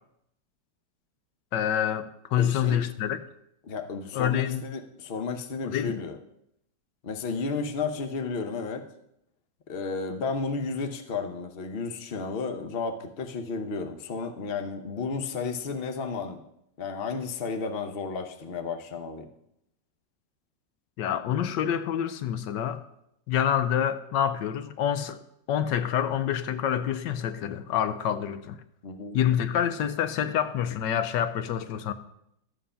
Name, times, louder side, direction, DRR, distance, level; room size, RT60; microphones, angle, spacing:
voice 1, 1.5-3.2 4.1-4.6 5.6-6.0 21.0-22.8 23.3-25.2 25.5-28.6 29.1-31.9, left 9 dB, 80° left, 1.3 m, -27 dB
voice 2, 2.4-2.8 3.6-6.2 7.0-8.9 9.7-16.4 16.8-19.3 28.8-29.2, left 4 dB, 45° left, 0.9 m, -32 dB
12.5 x 7.5 x 5.6 m
omnidirectional pair, 1.9 m